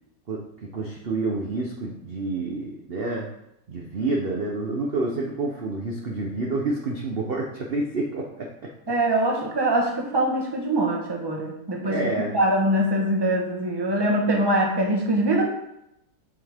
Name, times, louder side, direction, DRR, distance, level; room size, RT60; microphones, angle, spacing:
voice 1, 0.3-3.3 3.7-8.7 11.8-12.4, right 2 dB, 45° right, -1 dB, 0.8 m, -28 dB
voice 2, 8.9-12.0 12.3-15.4, right 1 dB, 15° right, 0 dB, 1.0 m, -23 dB
8.0 x 5.9 x 3.6 m, 0.81 s
omnidirectional pair, 2.0 m